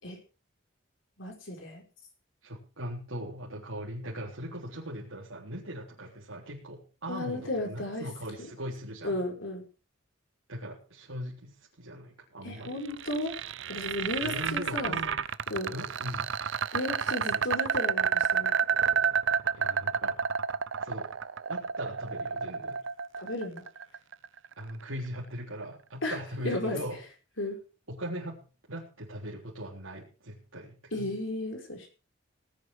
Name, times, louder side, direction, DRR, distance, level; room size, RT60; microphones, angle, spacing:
voice 1, 1.2-1.8 7.1-8.1 9.0-9.6 12.4-13.4 13.7-15.0 15.5-15.7 16.7-18.5 23.2-23.7 26.0-26.2 26.4-26.8 27.4-27.6 30.9-31.9, left 1 dB, 70° left, 3 dB, 5.2 m, -34 dB
voice 2, 2.4-9.2 10.5-12.8 14.2-15.2 15.7-16.3 17.3-17.4 19.6-20.2 20.8-21.1 21.5-22.8 24.6-27.0 27.9-28.4 28.7-31.1, equal, 85° right, -5 dB, 3.6 m, -40 dB
sound 1, 12.6-24.7, right 7 dB, 65° right, 0.7 m, -30 dB
18.5 x 10.0 x 4.9 m, 0.34 s
head